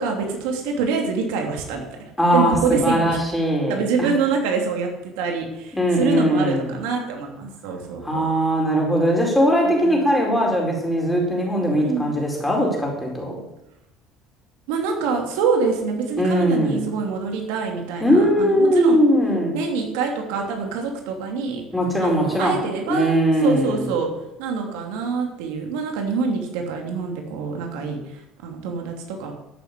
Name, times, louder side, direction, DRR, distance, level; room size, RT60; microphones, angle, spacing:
voice 1, 0.0-3.2 3.7-8.3 9.7-10.1 11.7-12.1 14.7-19.0 19.5-21.6 22.0-24.1 24.4-29.3, right 5 dB, 90° right, 2 dB, 3.4 m, -26 dB
voice 2, 2.2-4.1 5.7-6.7 8.0-13.4 16.2-16.9 18.0-19.6 21.7-22.6 22.9-23.9, equal, 5° left, -1 dB, 4.6 m, -20 dB
13.0 x 8.0 x 8.5 m, 0.89 s
cardioid pair, 145°, 0 cm